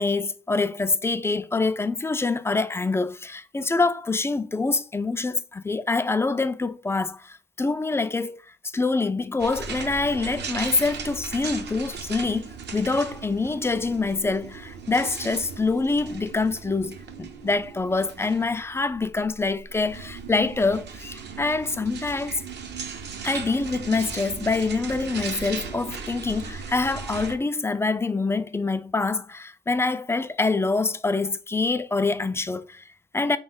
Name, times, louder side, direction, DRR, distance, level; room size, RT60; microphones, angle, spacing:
voice 1, 0.0-8.4 8.7-22.4 23.2-33.4, left 3 dB, 15° left, 0.3 m, -25 dB
sound 1, 9.4-27.4, right 5 dB, 60° right, 0.8 m, -37 dB
3.5 x 3.1 x 3.9 m
cardioid pair, 90°, 20 cm